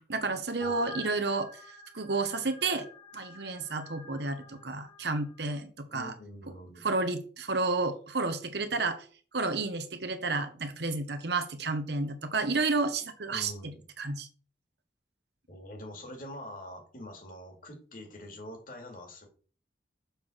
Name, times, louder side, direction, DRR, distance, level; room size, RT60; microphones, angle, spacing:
voice 1, 0.0-1.5 1.9-2.9 3.1-6.1 6.8-9.0 9.3-13.5 14.0-14.3, right 3 dB, 60° right, 9 dB, 1.0 m, -31 dB
voice 2, 0.6-1.1 5.9-6.8 13.3-13.8 15.5-19.3, left 1 dB, 45° left, 2 dB, 2.2 m, -45 dB
sound 1, 0.6-5.1, left 1 dB, 25° left, 1.1 m, -48 dB
7.0 x 3.8 x 6.2 m, 0.41 s
head